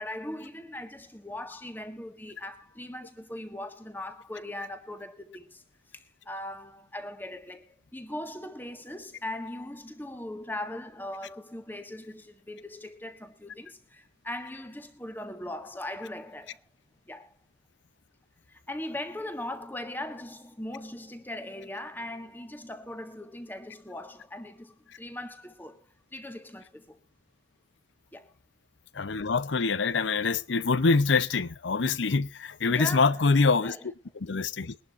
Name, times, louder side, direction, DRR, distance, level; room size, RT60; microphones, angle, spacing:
voice 1, 0.0-5.6 5.9-16.6 17.1-17.3 18.5-27.0 28.1-28.3 32.6-33.3 33.6-33.9, left 1 dB, 10° left, 1.6 m, -39 dB
voice 2, 29.0-33.8 34.2-34.7, left 4 dB, 80° left, 0.7 m, -25 dB
22.5 x 11.5 x 2.5 m
head